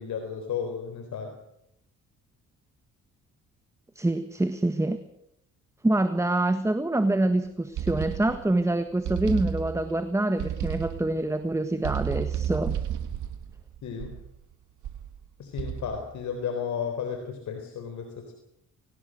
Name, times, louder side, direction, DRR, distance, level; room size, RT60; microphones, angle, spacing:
voice 1, 0.0-1.3 13.8-14.1 15.4-18.3, left 7 dB, 70° left, 5 dB, 4.0 m, -33 dB
voice 2, 3.9-5.0 5.8-12.8, right 2 dB, 10° right, 9 dB, 1.5 m, -26 dB
sound 1, 7.8-8.6 9.1-10.0 10.4-11.2 11.8-14.4 14.8-15.2 15.6-16.1, right 9 dB, 75° right, 2.0 m, -32 dB
24.0 x 19.0 x 6.6 m, 0.78 s
cardioid pair, 90°, 30 cm